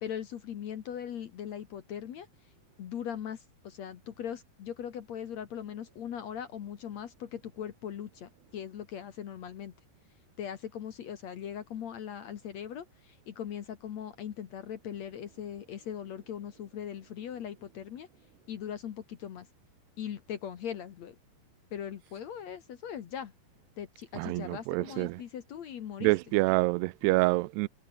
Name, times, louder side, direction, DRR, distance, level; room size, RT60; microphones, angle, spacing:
voice 1, 0.0-2.3 2.8-9.7 10.4-18.1 18.5-19.5 20.0-21.2 21.7-23.3 23.8-26.1, left 9 dB, 70° left, 1.7 m, -40 dB
voice 2, 24.1-25.2 26.0-27.7, right 22 dB, 85° right, 2.4 m, -27 dB
omnidirectional pair, 5.3 m